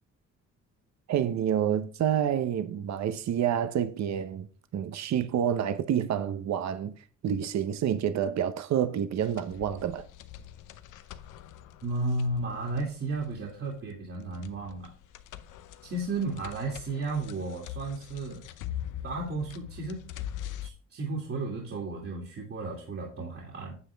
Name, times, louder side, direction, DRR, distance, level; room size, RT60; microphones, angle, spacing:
voice 1, 1.1-4.5 4.7-6.9 7.2-10.1, right 9 dB, 65° right, 0.9 m, -28 dB
sound 1, 9.2-20.7, left 11 dB, 85° left, 0.8 m, -43 dB
voice 2, 11.8-14.9 15.8-18.5 19.0-20.1 20.6-23.8, right 2 dB, 50° right, 2.5 m, -33 dB
9.7 x 7.6 x 3.5 m
cardioid pair, 90°, 30 cm